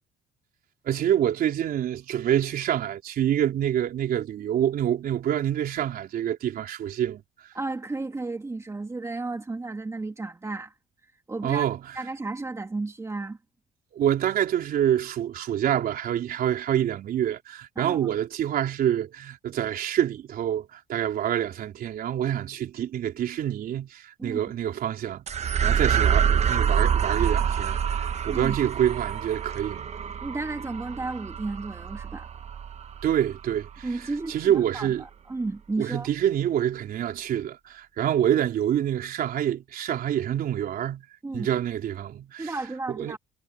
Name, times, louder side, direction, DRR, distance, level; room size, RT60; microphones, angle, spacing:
voice 1, 0.8-7.2 11.4-11.8 13.9-29.9 33.0-33.9 34.3-35.0 35.8-41.0 41.3-42.5 43.0-43.1, right 10 dB, 60° right, 4.0 m, -26 dB
voice 2, 7.5-10.7 11.3-11.7 11.9-13.4 17.8-18.1 24.2-24.4 28.3-28.6 30.2-32.3 33.8-36.1 41.2-41.5 42.4-43.2, right 3 dB, 15° right, 2.3 m, -33 dB
sound 1, 25.3-33.9, right 7 dB, 40° right, 1.2 m, -26 dB
cardioid pair, 110°, 17 cm